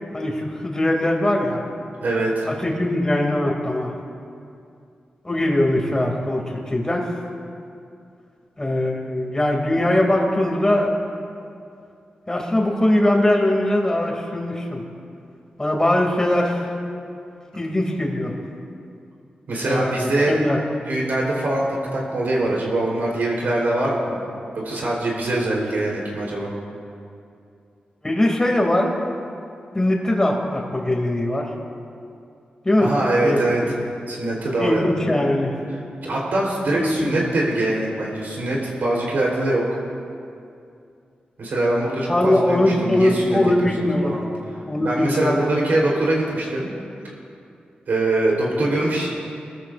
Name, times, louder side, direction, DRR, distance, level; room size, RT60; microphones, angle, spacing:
voice 1, 0.1-1.6 2.5-3.9 5.2-7.1 8.6-10.9 12.3-14.8 15.6-16.6 17.5-18.3 19.6-19.9 20.3-20.6 28.0-28.9 29.7-31.5 32.6-32.9 33.2-33.7 34.6-35.5 36.8-37.1 42.1-44.1 44.7-45.4, left 1 dB, 20° left, 0 dB, 2.6 m, -21 dB
voice 2, 2.0-2.5 19.5-20.3 20.9-21.7 21.9-24.2 24.5-26.5 32.8-33.6 34.1-34.8 36.0-39.7 41.4-43.4 44.0-44.2 44.8-46.7 47.0-47.1 47.9-49.1, right 2 dB, 80° right, -3 dB, 3.8 m, -23 dB
22.5 x 13.5 x 2.6 m, 2.5 s
wide cardioid pair, 80°, 3 cm